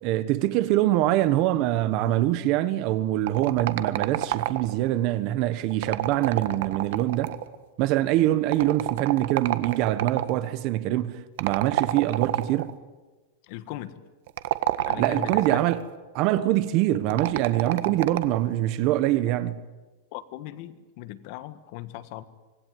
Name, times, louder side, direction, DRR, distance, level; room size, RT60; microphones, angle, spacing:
voice 1, 0.0-7.4 7.8-12.8 15.0-15.8 16.1-19.6, right 14 dB, 40° right, 1.3 m, -24 dB
sound 1, 3.3-4.9 5.7-7.6 8.5-10.4 11.4-12.7 14.3-15.8 17.1-18.4, right 14 dB, 65° right, 1.5 m, -28 dB
voice 2, 13.4-14.0 14.9-15.6 17.8-18.0 20.1-22.2, left 14 dB, 50° left, 1.6 m, -39 dB
26.0 x 19.5 x 9.4 m
supercardioid pair, 160°, 0 cm